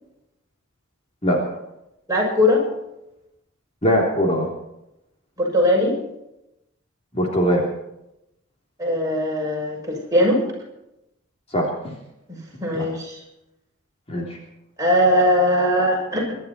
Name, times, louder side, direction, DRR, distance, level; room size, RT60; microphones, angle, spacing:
voice 1, 2.1-2.6 5.4-6.0 8.8-10.4 12.3-13.2 14.8-16.4, left 1 dB, 15° right, -2 dB, 6.9 m, -20 dB
voice 2, 3.8-4.5 7.1-7.7 11.5-11.9 12.7-12.9 14.1-14.4, equal, 30° left, -1 dB, 3.3 m, -21 dB
24.5 x 12.5 x 4.4 m, 0.86 s
head